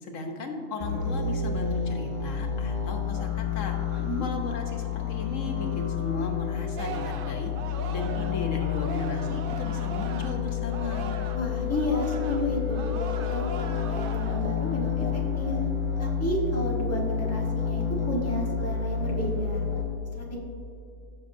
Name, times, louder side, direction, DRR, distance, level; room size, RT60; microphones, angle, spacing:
voice 1, 0.0-11.1, left 2 dB, 90° left, 2 dB, 1.4 m, -36 dB
sound 1, 0.8-19.8, left 7 dB, 70° left, 2.0 m, -29 dB
Singing, 6.8-11.5 11.7-14.5 14.9-15.3, right 6 dB, 60° right, 0.7 m, -40 dB
voice 2, 11.3-15.5 16.0-19.6 20.1-20.4, equal, 10° left, -3 dB, 1.3 m, -31 dB
15.5 x 6.3 x 2.7 m, 2.6 s
omnidirectional pair, 1.3 m